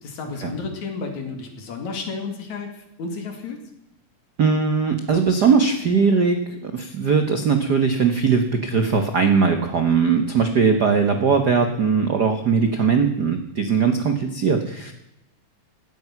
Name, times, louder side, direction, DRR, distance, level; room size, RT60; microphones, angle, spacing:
voice 1, 0.0-3.6, left 4 dB, 60° left, 5 dB, 3.6 m, -32 dB
voice 2, 4.4-14.9, right 5 dB, 85° right, 6 dB, 0.8 m, -20 dB
17.5 x 13.5 x 6.0 m, 0.86 s
omnidirectional pair, 3.9 m